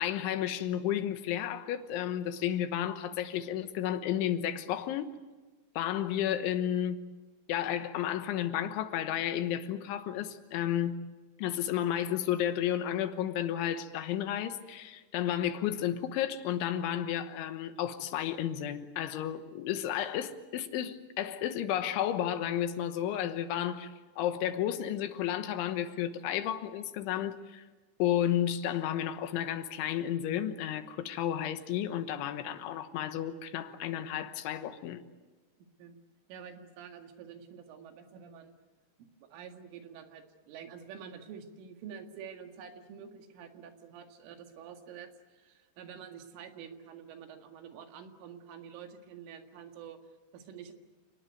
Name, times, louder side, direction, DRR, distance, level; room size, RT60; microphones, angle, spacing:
voice 1, 0.0-5.1 5.8-7.0 7.5-11.0 11.4-23.9 24.2-27.6 28.0-35.0, left 11 dB, 80° left, 3.6 m, -32 dB
voice 2, 36.3-38.6 39.2-50.0 50.3-50.7, right 7 dB, 85° right, 4.5 m, -48 dB
29.0 x 19.0 x 9.2 m
omnidirectional pair, 5.6 m